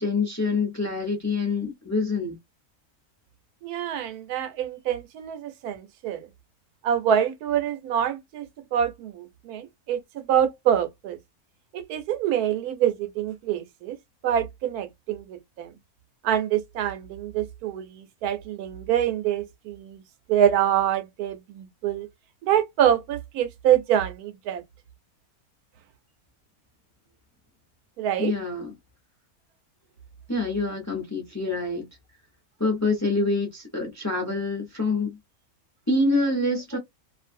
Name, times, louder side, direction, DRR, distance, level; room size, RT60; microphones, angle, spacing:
voice 1, 0.0-2.3 28.2-28.7 30.3-31.9 32.6-35.2 35.9-36.8, left 3 dB, 15° left, 0.6 m, -26 dB
voice 2, 3.6-6.3 6.8-11.2 11.7-14.0 14.2-15.7 16.2-20.0 20.3-22.1 22.4-24.6 28.0-28.3, right 10 dB, 85° right, 1.1 m, -25 dB
2.5 x 2.4 x 2.5 m
omnidirectional pair, 1.6 m